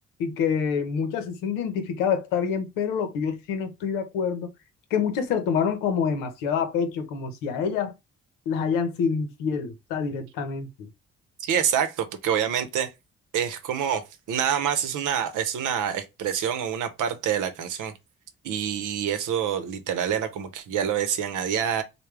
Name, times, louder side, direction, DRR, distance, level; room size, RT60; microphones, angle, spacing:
voice 1, 0.2-4.5 4.9-7.9 8.5-10.9, left 6 dB, 80° left, 0.8 m, -27 dB
voice 2, 11.4-12.9 13.3-17.9 18.4-21.8, right 8 dB, 65° right, 0.8 m, -26 dB
3.3 x 2.2 x 3.2 m
hypercardioid pair, 45°, 33 cm